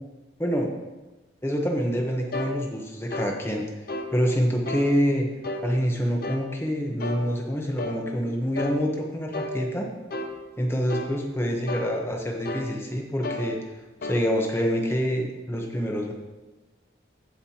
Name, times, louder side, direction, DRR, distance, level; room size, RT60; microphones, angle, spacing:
voice 1, 0.4-0.7 1.4-3.6 4.1-5.3 5.6-9.9 10.6-13.6 14.0-16.1, equal, 15° left, 1 dB, 1.0 m, -26 dB
sound 1, 2.3-2.6 3.1-3.3 3.9-4.1 4.6-4.9 5.4-5.7 6.2-6.5 7.0-7.3 7.8-8.0 8.5-8.8 9.3-9.6 10.1-10.3 10.9-11.2 11.7-11.9 12.4-12.7 13.2-13.5 14.0-14.2, left 2 dB, 50° left, 0.7 m, -32 dB
15.5 x 5.3 x 2.9 m, 1.2 s
head